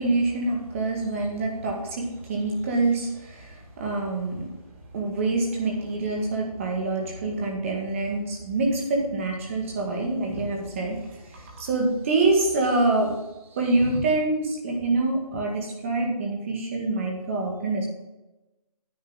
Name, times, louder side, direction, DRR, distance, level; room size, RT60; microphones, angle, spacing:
voice 1, 0.0-4.5 4.9-13.1 13.5-17.9, right 2 dB, 20° right, 0 dB, 1.9 m, -26 dB
9.9 x 8.6 x 3.9 m, 1.0 s
figure-of-eight pair, 165°, 19 cm